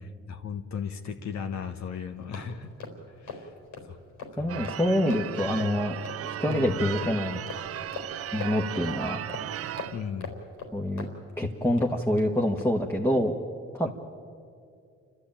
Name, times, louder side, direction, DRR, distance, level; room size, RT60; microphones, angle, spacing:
voice 1, 0.0-2.7 3.2-3.5 3.8-4.0 4.3-4.7 6.4-6.8 9.9-10.3, left 7 dB, 65° left, 6 dB, 1.3 m, -36 dB
sound 1, 1.9-12.3 12.6-12.8, left 4 dB, 85° left, 4.0 m, -43 dB
voice 2, 4.4-6.0 6.2-7.4 8.3-9.2 10.7-11.1 11.4-13.3 13.7-13.9, left 1 dB, 5° left, 0 dB, 1.4 m, -26 dB
Church bell / Car / Alarm, 4.5-10.1, right 11 dB, 50° right, 0.5 m, -36 dB
29.5 x 12.5 x 8.9 m, 2.4 s
cardioid pair, 90°, 30 cm